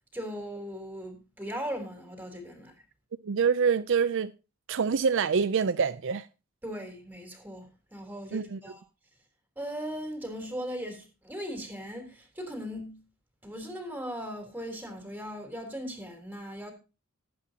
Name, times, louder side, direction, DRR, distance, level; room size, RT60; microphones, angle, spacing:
voice 1, 0.1-2.8 6.6-8.8 9.6-13.0 13.4-16.7, equal, 10° right, 3.4 m, -38 dB
voice 2, 3.2-4.3 4.7-6.3 8.3-8.6, right 6 dB, 60° right, 0.5 m, -26 dB
18.5 x 8.7 x 2.8 m
head